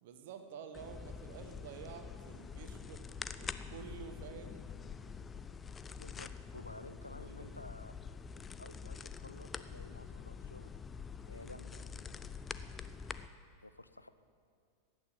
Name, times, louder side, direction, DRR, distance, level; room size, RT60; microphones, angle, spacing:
voice 1, 0.0-3.1 3.4-4.6 6.6-7.6, right 7 dB, 55° right, 7 dB, 1.3 m, -50 dB
sound 1, 0.7-13.3, left 6 dB, 20° left, 0.5 m, -46 dB
voice 2, 5.9-7.9 8.6-10.7 11.3-12.7 13.6-14.1, left 2 dB, 85° left, 12 dB, 0.6 m, -53 dB
14.5 x 9.1 x 8.0 m, 2.3 s
figure-of-eight pair, 90°, 0 cm